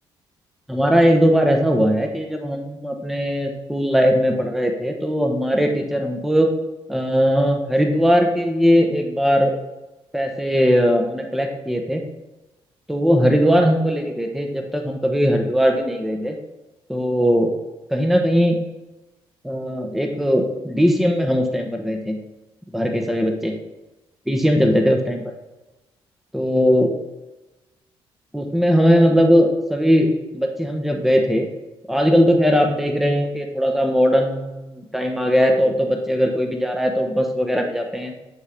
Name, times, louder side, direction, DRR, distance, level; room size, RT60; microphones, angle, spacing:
voice 1, 0.7-6.5 6.9-9.5 10.1-12.0 12.9-16.4 16.9-17.5 17.9-18.6 19.4-22.2 22.7-23.6 24.3-25.2 26.3-26.9 28.3-31.5 31.9-38.1, equal, ahead, 3 dB, 0.8 m, -19 dB
9.5 x 3.6 x 3.3 m, 1.1 s
supercardioid pair, 60°, 11 cm